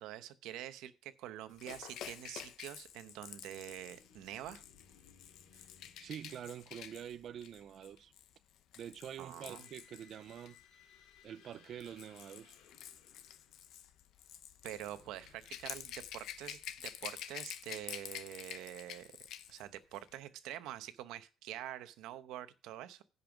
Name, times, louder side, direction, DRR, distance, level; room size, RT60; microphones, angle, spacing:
voice 1, 0.0-4.6 5.5-5.7 9.2-9.7 14.6-23.0, right 13 dB, 85° right, 0.9 m, -46 dB
Rattle / Rattle (instrument), 1.6-10.6 11.5-19.6 19.9-20.1, left 10 dB, 65° left, 0.8 m, -49 dB
sound 1, 3.8-7.0 9.1-16.4, left 7 dB, 80° left, 2.3 m, -65 dB
voice 2, 6.0-8.1 8.8-12.6, right 9 dB, 45° right, 0.4 m, -47 dB
10.5 x 5.6 x 6.0 m
cardioid pair, 160°, 0 cm